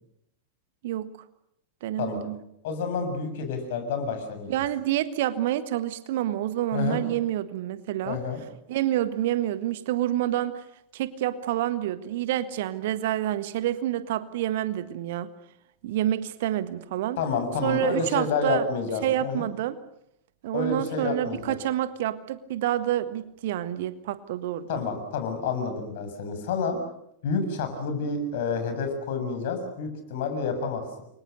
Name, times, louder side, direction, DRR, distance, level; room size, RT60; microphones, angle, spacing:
voice 1, 1.8-2.4 4.5-8.2 8.7-10.6 10.9-15.3 15.8-17.2 17.6-18.7 19.0-19.8 20.4-24.8, right 12 dB, 55° right, 13 dB, 1.6 m, -28 dB
voice 2, 2.6-4.5 6.7-7.0 8.0-8.4 17.2-19.5 20.5-21.4 24.7-26.8 27.2-31.0, left 4 dB, 55° left, 7 dB, 7.1 m, -29 dB
30.0 x 24.0 x 6.7 m, 0.78 s
figure-of-eight pair, 90°, 0 cm